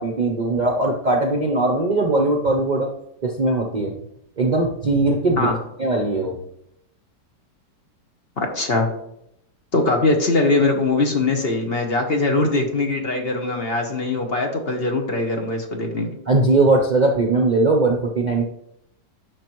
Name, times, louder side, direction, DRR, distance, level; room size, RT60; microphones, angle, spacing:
voice 1, 0.0-2.9 3.2-3.9 4.4-5.5 5.8-6.3 16.3-18.5, right 2 dB, 85° right, 2 dB, 0.4 m, -20 dB
voice 2, 8.4-8.9 9.7-16.2, left 2 dB, 40° left, 3 dB, 1.0 m, -21 dB
10.0 x 6.0 x 3.0 m, 0.78 s
omnidirectional pair, 1.9 m